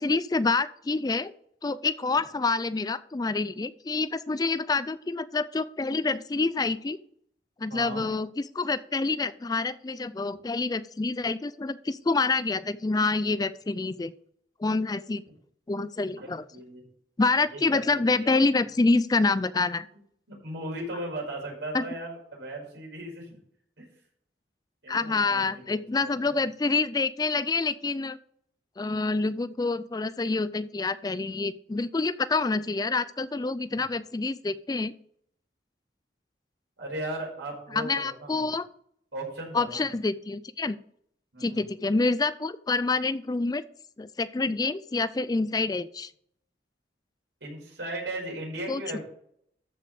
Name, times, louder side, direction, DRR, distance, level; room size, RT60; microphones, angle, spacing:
voice 1, 0.0-1.3 1.6-7.0 7.6-14.1 14.6-15.2 15.7-16.4 17.2-19.9 21.7-21.8 24.9-28.2 28.8-34.9 37.7-38.7 39.5-40.8 41.4-43.6 44.0-46.1 48.7-49.0, left 3 dB, 20° left, 15 dB, 0.4 m, -27 dB
voice 2, 7.7-8.1 16.2-16.8 17.5-18.4 20.3-23.4 23.8-23.9 24.8-26.1 33.7-33.8 36.8-38.5 39.1-39.9 41.3-41.7 47.4-49.0, right 1 dB, 80° right, -1 dB, 5.0 m, -37 dB
13.5 x 5.2 x 5.0 m, 0.67 s
head